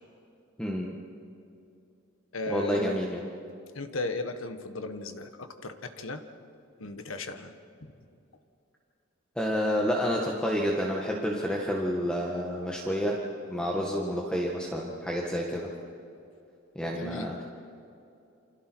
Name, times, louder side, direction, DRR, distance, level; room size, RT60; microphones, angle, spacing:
voice 1, 0.6-1.0 2.5-3.3 9.3-13.2 13.5-15.7 16.7-17.4, equal, 5° left, -1 dB, 1.7 m, -29 dB
voice 2, 2.3-3.0 3.7-6.2 6.8-7.5 7.8-7.9 16.9-17.3, left 2 dB, 85° left, 8 dB, 1.5 m, -36 dB
29.0 x 26.0 x 4.7 m, 2.6 s
head